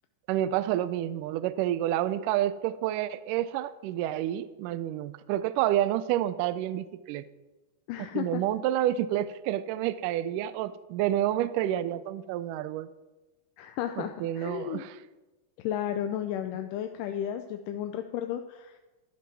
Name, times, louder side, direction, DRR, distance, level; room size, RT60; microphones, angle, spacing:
voice 1, 0.3-7.2 8.1-12.9 14.0-15.0, right 12 dB, 80° right, 14 dB, 2.0 m, -29 dB
voice 2, 7.9-8.4 13.6-14.8 15.6-18.8, left 10 dB, 75° left, 6 dB, 2.1 m, -33 dB
14.5 x 11.0 x 6.1 m, 1.1 s
omnidirectional pair, 4.2 m